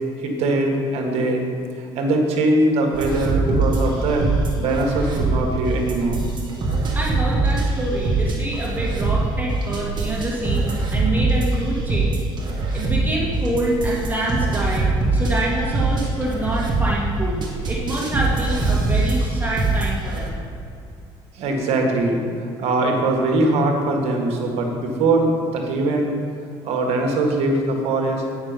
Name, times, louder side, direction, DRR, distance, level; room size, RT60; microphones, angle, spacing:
voice 1, 0.2-1.4 1.8-4.2 4.6-6.2 21.3-22.2 22.6-26.1 26.6-28.2, right 2 dB, 75° right, 2 dB, 1.5 m, -21 dB
sound 1, 2.9-20.3, right 3 dB, 45° right, 1.9 m, -23 dB
voice 2, 6.9-12.2 12.7-17.4 17.7-20.4, right 1 dB, 15° right, -5 dB, 2.3 m, -26 dB
8.9 x 6.4 x 5.1 m, 2.4 s
supercardioid pair, 85°, 11 cm